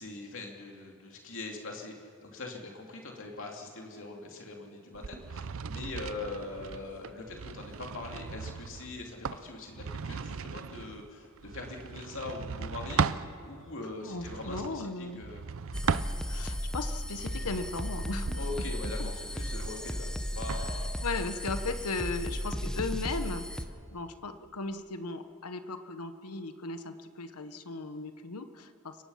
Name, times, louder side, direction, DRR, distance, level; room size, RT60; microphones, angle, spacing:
voice 1, 0.0-15.4 18.3-20.9, left 3 dB, 60° left, 1 dB, 2.9 m, -42 dB
sound 1, 4.9-13.3 14.1-16.6 17.1-20.7, right 5 dB, 65° right, 0.6 m, -37 dB
voice 2, 14.0-15.2 16.3-18.3 18.8-19.1 20.6-29.0, left 3 dB, 85° left, 9 dB, 1.1 m, -37 dB
sound 2, 15.7-23.6, equal, 5° left, 0.8 m, -35 dB
29.5 x 18.0 x 5.7 m, 2.5 s
head